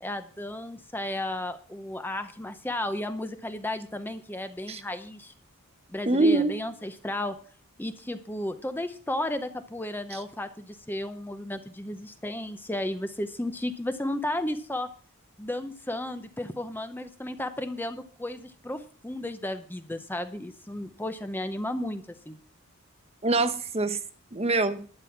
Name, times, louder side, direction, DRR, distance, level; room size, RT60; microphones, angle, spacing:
voice 1, 0.0-5.3 5.9-7.4 7.8-14.9 15.4-22.4, left 1 dB, 10° left, 0.7 m, -33 dB
voice 2, 6.1-6.6 10.1-10.2 23.2-24.0 24.3-24.8, right 2 dB, 30° right, 1.0 m, -24 dB
12.0 x 8.9 x 5.8 m
head